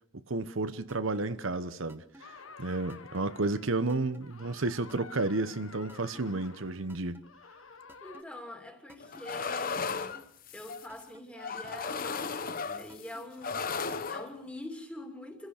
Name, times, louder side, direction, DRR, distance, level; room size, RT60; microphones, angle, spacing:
voice 1, 0.3-2.3 2.6-7.2, right 2 dB, 75° right, 1.1 m, -32 dB
sound 1, 0.9-1.2 1.9-2.2 2.9-3.2 3.9-4.2 4.9-5.2 5.9-6.2 6.9-7.2 7.9-8.2 8.9-9.2 9.9-10.2 10.9-11.2 11.9-12.2 12.9-13.2 13.9-14.2, right 1 dB, 10° right, 1.5 m, -53 dB
sound 2, 2.2-8.2, left 5 dB, 85° left, 1.5 m, -51 dB
voice 2, 8.0-10.2 10.5-15.5, left 1 dB, 5° left, 2.9 m, -45 dB
sound 3, 9.0-10.9 11.4-13.1 13.4-14.3, left 5 dB, 40° left, 1.0 m, -35 dB
27.5 x 16.0 x 6.6 m
head